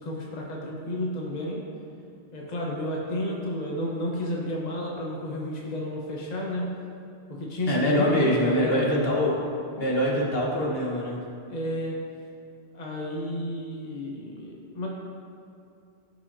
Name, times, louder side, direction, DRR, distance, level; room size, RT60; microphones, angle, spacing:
voice 1, 0.0-1.6 2.3-6.7 7.3-9.1 11.5-12.0 12.7-14.9, left 1 dB, 40° left, -3 dB, 1.3 m, -31 dB
voice 2, 7.7-9.4 9.7-11.2, equal, 65° left, -4 dB, 1.7 m, -24 dB
16.0 x 6.2 x 2.8 m, 2.6 s
omnidirectional pair, 1.1 m